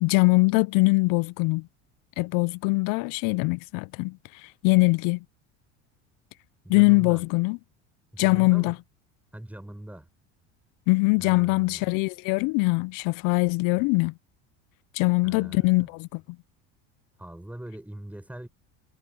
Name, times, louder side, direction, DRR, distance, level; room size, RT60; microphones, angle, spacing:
voice 1, 0.0-1.7 2.2-4.2 4.6-5.2 6.7-7.6 8.2-8.8 10.9-14.1 14.9-16.2, left 27 dB, 65° left, 0.6 m, -22 dB
voice 2, 6.6-7.2 8.1-8.8 9.3-10.1 11.2-12.0 15.2-15.9 17.2-18.5, right 1 dB, 5° right, 6.9 m, -41 dB
supercardioid pair, 90°, 35 cm